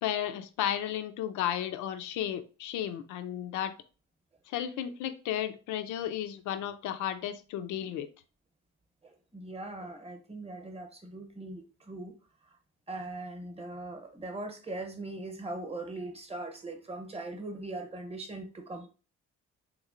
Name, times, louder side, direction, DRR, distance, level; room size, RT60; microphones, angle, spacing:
voice 1, 0.0-3.7 4.5-8.1, left 10 dB, 80° left, 10 dB, 0.5 m, -33 dB
voice 2, 9.0-12.1 12.4-12.6 12.9-18.9, right 2 dB, 20° right, 5 dB, 0.8 m, -40 dB
3.4 x 3.0 x 2.4 m, 0.34 s
cardioid pair, 90°, 30 cm